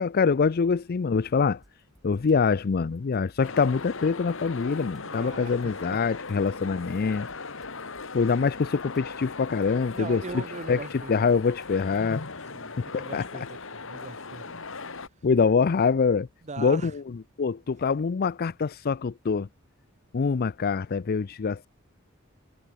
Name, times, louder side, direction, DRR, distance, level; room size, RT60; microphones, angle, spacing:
voice 1, 0.0-1.6 2.0-7.3 8.1-10.8 11.1-12.2 12.8-13.3 15.2-16.3 16.6-19.5 20.1-21.7, left 5 dB, 45° left, 0.4 m, -25 dB
sound 1, 1.6-2.5 3.0-12.2, equal, ahead, 3.8 m, -61 dB
sound 2, 3.4-15.1, left 4 dB, 65° left, 2.4 m, -39 dB
voice 2, 5.0-6.0 9.9-11.1 12.5-14.6 16.4-16.9, right 3 dB, 35° right, 0.7 m, -40 dB
head